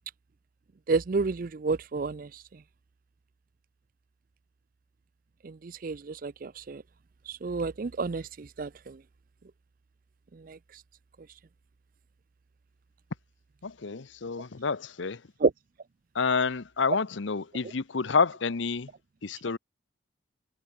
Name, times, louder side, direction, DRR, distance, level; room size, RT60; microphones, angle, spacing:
voice 1, 0.9-2.3 5.8-6.0 6.2-6.3 6.7-6.8 7.4-8.2 8.6-8.7 15.4-15.5, right 4 dB, 45° right, 0.4 m, -27 dB
voice 2, 13.6-15.2 16.1-18.9 19.2-19.6, left 5 dB, 70° left, 0.8 m, -29 dB
head